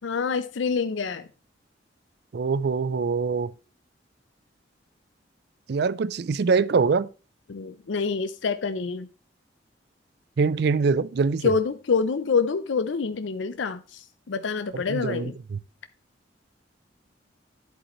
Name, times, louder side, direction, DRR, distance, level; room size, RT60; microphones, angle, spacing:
voice 1, 0.0-1.2 7.5-9.1 11.4-14.0 14.3-15.3, left 5 dB, 85° left, 0.5 m, -26 dB
voice 2, 2.3-3.5 5.7-7.1 10.4-11.5 14.7-15.6, right 4 dB, 60° right, 0.4 m, -24 dB
10.5 x 8.2 x 3.0 m
head